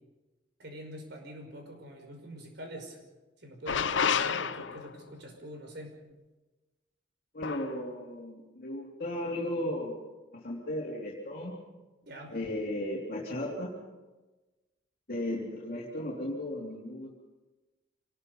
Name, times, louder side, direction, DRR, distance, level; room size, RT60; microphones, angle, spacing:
voice 1, 0.6-3.0 3.4-5.9 12.0-12.4, equal, 60° right, 3 dB, 5.4 m, -44 dB
sound 1, 3.7-5.0 7.4-7.8, left 7 dB, 75° left, 0.7 m, -30 dB
voice 2, 7.3-10.1 10.3-11.7 12.3-13.7 15.1-17.1, left 1 dB, 50° left, -3 dB, 3.3 m, -35 dB
26.5 x 19.5 x 5.5 m, 1.2 s
head